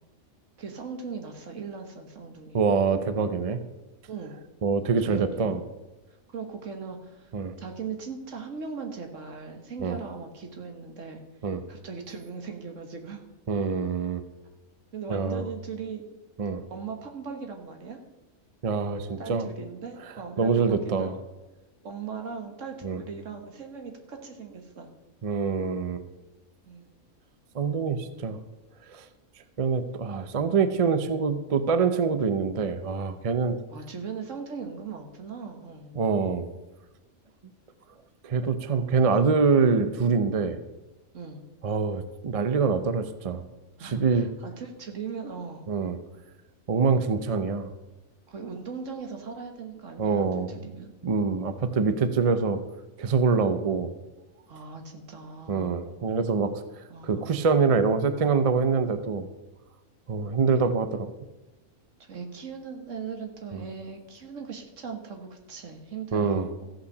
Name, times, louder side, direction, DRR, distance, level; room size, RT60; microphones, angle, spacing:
voice 1, 0.6-2.6 4.1-4.4 5.0-5.5 6.3-7.3 7.6-11.2 11.7-13.2 14.9-16.0 16.7-18.0 19.2-21.2 21.8-24.9 26.7-26.9 33.7-36.0 41.1-41.4 43.8-45.7 48.3-50.9 54.5-55.7 56.9-57.4 62.0-66.7, right 5 dB, 60° right, 4 dB, 1.6 m, -39 dB
voice 2, 2.5-3.6 4.6-5.6 7.3-7.6 9.8-10.0 11.4-11.6 13.5-14.2 15.1-15.4 16.4-16.6 18.6-19.5 20.4-21.1 22.8-23.0 25.2-26.0 27.5-28.4 28.9-29.1 29.6-33.6 36.0-36.5 38.2-40.6 41.6-43.5 43.8-44.3 45.7-46.0 46.7-47.7 50.0-50.6 51.0-52.6 53.0-53.9 55.5-56.6 57.0-59.3 60.1-61.1 63.5-63.6 66.1-66.5, right 5 dB, 45° right, 10 dB, 0.4 m, -25 dB
14.5 x 5.6 x 6.6 m, 1.1 s
omnidirectional pair, 1.5 m